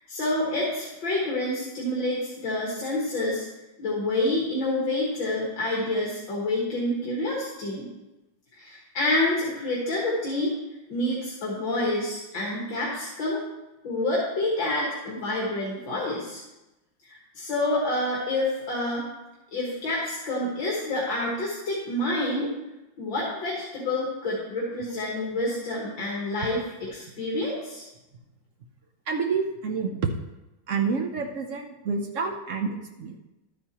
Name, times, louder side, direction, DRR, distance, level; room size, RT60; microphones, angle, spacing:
voice 1, 0.1-3.5 3.8-7.9 8.6-10.5 10.9-13.4 13.8-16.4 17.1-19.0 19.5-22.5 23.0-26.6 26.9-27.8, left 1 dB, 75° left, -4 dB, 2.5 m, -28 dB
voice 2, 29.1-30.1 30.7-33.2, right 5 dB, 65° right, 4 dB, 0.7 m, -28 dB
12.0 x 9.3 x 2.9 m, 0.99 s
omnidirectional pair, 2.1 m